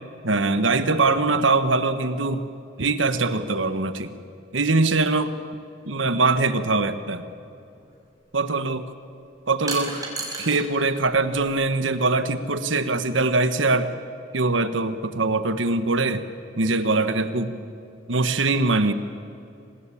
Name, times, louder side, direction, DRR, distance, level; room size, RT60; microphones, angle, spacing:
voice 1, 0.2-2.5 2.8-4.1 4.5-5.3 5.9-7.2 8.3-8.9 9.5-10.1 10.4-13.9 14.3-16.2 16.6-17.6 18.1-18.9, right 3 dB, 80° right, 11 dB, 1.4 m, -22 dB
sound 1, 7.7-7.9 9.7-10.6 11.0-11.8, right 3 dB, 20° right, 5.7 m, -33 dB
25.5 x 20.0 x 8.5 m, 2.6 s
head